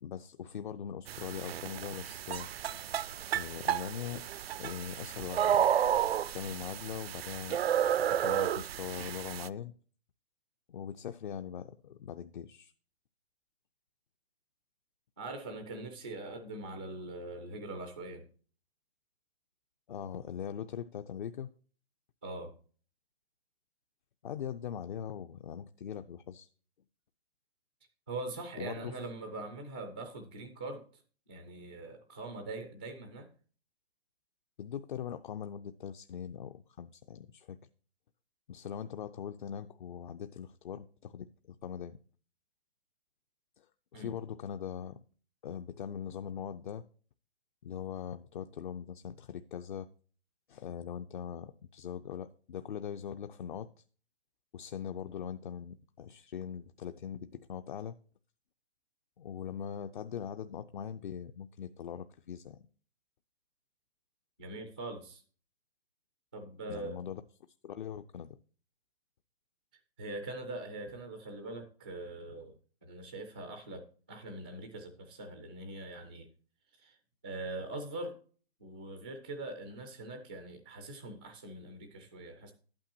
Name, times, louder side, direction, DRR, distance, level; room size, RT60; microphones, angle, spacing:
voice 1, 0.0-2.5 3.3-4.3 4.6-5.6 6.3-7.6 8.0-9.7 10.7-12.7 19.9-21.5 24.2-26.5 28.6-28.9 34.6-37.6 38.5-42.0 43.6-45.0 45.4-46.8 47.6-49.9 50.5-53.7 54.5-58.0 59.2-62.7 66.7-67.2 67.6-68.3, left 8 dB, 50° left, 8 dB, 0.6 m, -41 dB
sound 1, 1.1-9.5, right 10 dB, 70° right, 0.5 m, -32 dB
voice 2, 15.2-18.3 22.2-22.5 28.1-31.0 31.3-33.3 43.9-44.1 64.4-65.2 66.3-67.0 70.0-72.6 72.8-76.3 76.8-77.0 77.2-78.2 78.6-82.5, right 2 dB, 10° right, 6 dB, 0.3 m, -42 dB
11.5 x 8.8 x 2.8 m, 0.42 s
hypercardioid pair, 155°, 32 cm